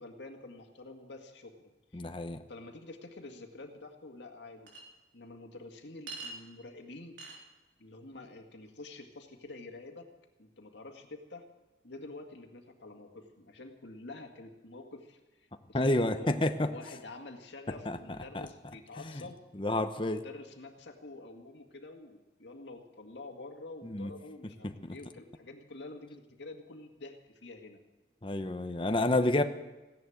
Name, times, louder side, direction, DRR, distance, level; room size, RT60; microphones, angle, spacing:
voice 1, 0.0-2.1 2.5-4.7 5.1-7.2 7.8-10.1 10.4-11.4 11.8-19.4 20.0-27.8, left 2 dB, 85° left, 4 dB, 2.0 m, -48 dB
voice 2, 1.9-2.4 15.7-16.7 17.9-18.0 18.3-18.4 19.5-20.2 23.8-24.1 24.6-24.9 28.2-29.4, left 1 dB, 30° left, 8 dB, 0.8 m, -29 dB
Chink clink, 4.7-4.8 6.1-6.4 7.2-7.4, right 3 dB, 80° right, 3.9 m, -42 dB
16.0 x 10.5 x 8.0 m, 1.1 s
head